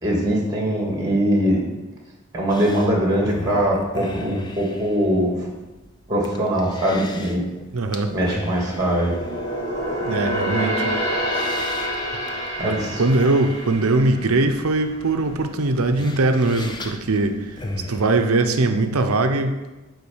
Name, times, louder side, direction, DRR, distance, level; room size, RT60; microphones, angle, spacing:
voice 1, 0.0-1.6 2.3-5.5 6.1-7.4 8.1-9.1 12.6-13.0, equal, 15° right, -2 dB, 1.9 m, -21 dB
sound 1, 2.5-18.2, left 2 dB, 20° left, 0.6 m, -37 dB
voice 2, 7.7-8.1 10.0-10.9 12.6-17.5 17.9-19.6, right 2 dB, 70° right, 7 dB, 0.7 m, -21 dB
sound 2, 8.1-15.5 15.8-16.1 16.6-17.3 17.7-17.8, equal, 55° left, 2.0 m, -28 dB
9.5 x 3.8 x 7.2 m, 1.1 s
head